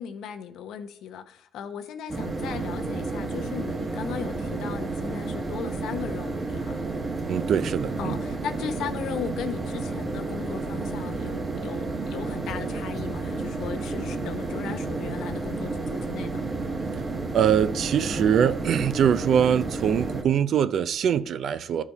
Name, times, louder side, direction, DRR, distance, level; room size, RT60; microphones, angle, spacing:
voice 1, 0.0-6.9 8.0-16.4, left 8 dB, 85° left, 0.9 m, -37 dB
sound 1, 2.1-20.2, right 3 dB, 30° right, 1.4 m, -31 dB
voice 2, 7.3-8.2 16.9-17.0 17.3-21.8, right 8 dB, 65° right, 0.5 m, -23 dB
13.0 x 5.1 x 4.1 m
cardioid pair, 110°, 0 cm